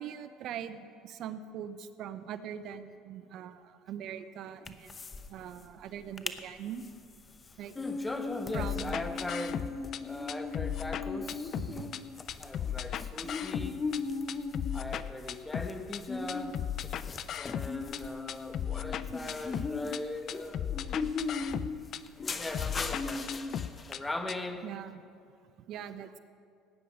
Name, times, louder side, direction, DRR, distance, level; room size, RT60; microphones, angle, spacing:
voice 1, 0.0-5.0 5.3-6.8 7.6-7.8 8.5-9.0 11.6-11.9 21.0-21.1 24.6-25.0 25.4-26.2, right 9 dB, 60° right, 12 dB, 0.7 m, -42 dB
sound 1, 4.6-5.3 5.5-5.6 6.0-6.4 6.8-23.9, left 4 dB, 30° left, 0.8 m, -38 dB
voice 2, 7.7-9.7 10.0-11.6 12.4-13.8 14.7-16.6 17.4-20.8 21.0-21.7 22.3-23.3 23.9-24.7, left 2 dB, 15° left, 7 dB, 1.2 m, -40 dB
sound 2, 8.5-10.0 10.3-12.0 12.3-14.0 14.3-16.0 16.3-18.0 18.3-20.0 20.3-22.0 22.3-24.0 24.3-24.4, left 10 dB, 50° left, 0.4 m, -36 dB
18.5 x 9.4 x 5.0 m, 2.3 s
supercardioid pair, 85°, 0 cm